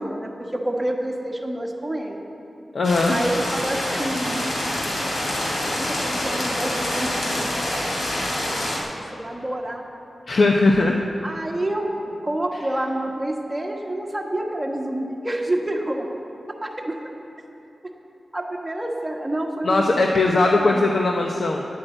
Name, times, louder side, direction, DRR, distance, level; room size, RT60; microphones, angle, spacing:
voice 1, 0.0-2.2 3.1-4.5 5.7-8.7 9.1-9.8 11.2-16.1 16.6-17.0 18.3-20.0 20.6-20.8, right 1 dB, 15° right, 0 dB, 1.4 m, -28 dB
voice 2, 2.7-3.2 10.3-11.0 19.6-21.7, left 2 dB, 55° left, 1 dB, 0.7 m, -19 dB
sound 1, 2.8-8.8, left 1 dB, 85° left, 2.9 m, -26 dB
10.5 x 8.9 x 7.8 m, 2.9 s
wide cardioid pair, 115°, 0 cm